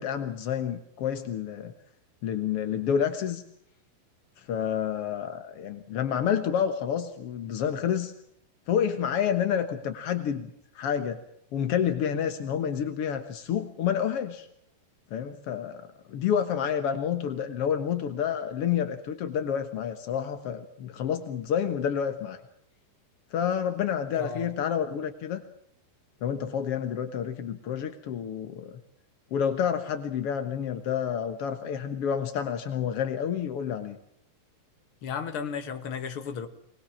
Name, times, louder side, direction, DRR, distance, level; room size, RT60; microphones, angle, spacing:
voice 1, 0.0-1.7 2.2-3.4 4.4-8.1 8.7-10.5 10.7-11.2 11.5-14.5 15.1-22.4 23.3-25.4 26.2-28.8 29.3-34.0, left 8 dB, 65° left, 1.5 m, -29 dB
voice 2, 24.1-24.5 35.0-36.5, left 6 dB, 45° left, 1.9 m, -34 dB
23.5 x 20.5 x 7.3 m
omnidirectional pair, 4.5 m